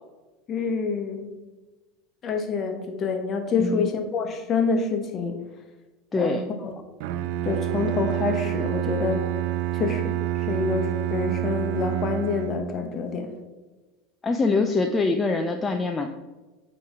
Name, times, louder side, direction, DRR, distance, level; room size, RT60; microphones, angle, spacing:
voice 1, 0.5-1.3 2.2-5.4 6.2-6.7 7.4-9.3 9.7-10.2 10.5-13.3, left 4 dB, 40° left, 5 dB, 1.0 m, -27 dB
voice 2, 3.6-3.9 6.1-6.4 14.2-16.1, left 3 dB, 20° left, 4 dB, 0.4 m, -24 dB
Bowed string instrument, 7.0-12.9, right 15 dB, 65° right, 0.3 m, -28 dB
8.9 x 3.1 x 3.5 m, 1.2 s
hypercardioid pair, 85°, 0 cm